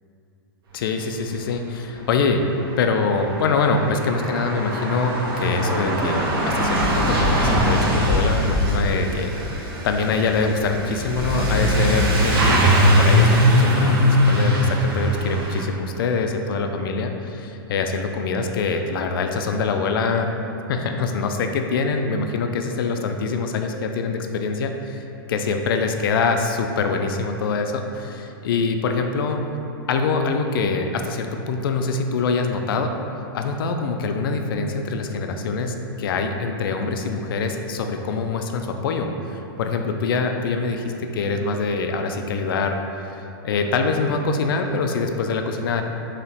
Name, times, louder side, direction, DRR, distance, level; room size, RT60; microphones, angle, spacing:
voice 1, 0.7-2.4 2.8-9.3 9.6-20.3 20.7-25.0 25.3-29.4 29.9-32.9 33.3-42.8 43.1-45.8, left 4 dB, 65° left, 5 dB, 0.4 m, -24 dB
Truck / Accelerating revving vroom, 1.9-2.0 2.2-15.6, equal, 75° right, 1.0 m, -21 dB
4.7 x 3.0 x 3.4 m, 2.8 s
supercardioid pair, 165°, 13 cm